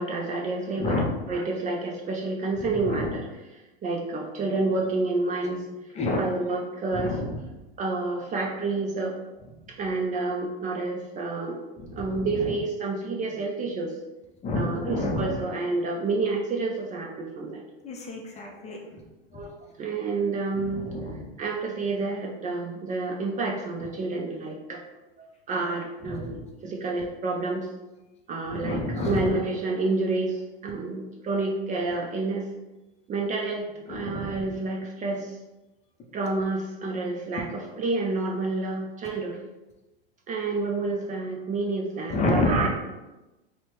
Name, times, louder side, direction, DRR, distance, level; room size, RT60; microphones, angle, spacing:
voice 1, 0.0-1.0 1.3-3.2 3.8-5.6 6.2-7.1 7.8-9.1 9.8-11.6 11.8-13.9 14.5-17.6 18.7-18.8 19.3-20.9 21.4-24.8 25.5-27.7 28.3-30.4 30.6-32.5 33.1-35.3 36.1-39.4 40.3-42.7, right 3 dB, 25° right, 0 dB, 0.5 m, -29 dB
voice 2, 0.8-1.1 2.6-3.2 6.0-6.2 6.9-7.4 11.8-12.6 14.4-15.4 17.8-19.0 19.3-19.4 20.5-21.3 26.0-26.5 28.5-29.3 33.9-34.4 42.1-42.7, left 2 dB, 20° left, 0 dB, 0.6 m, -29 dB
4.0 x 2.2 x 3.0 m, 1.1 s
hypercardioid pair, 90°, 30 cm